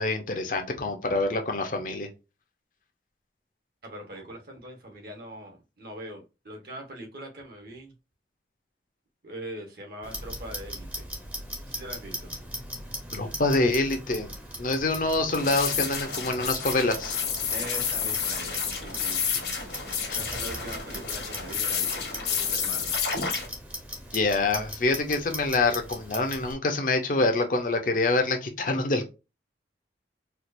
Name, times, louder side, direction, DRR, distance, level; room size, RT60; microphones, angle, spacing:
voice 1, 0.0-2.1 13.1-14.3 14.6-17.1 20.1-20.2 24.1-29.1, left 2 dB, 45° left, 0.7 m, -26 dB
voice 2, 3.8-7.9 9.2-11.1 11.6-12.3 17.5-19.5 20.1-22.9, right 1 dB, 55° right, 1.1 m, -42 dB
Clock, 10.0-26.5, equal, 10° right, 0.7 m, -39 dB
sound 1, 15.4-23.5, left 6 dB, 70° left, 1.2 m, -30 dB
4.5 x 2.5 x 2.5 m
head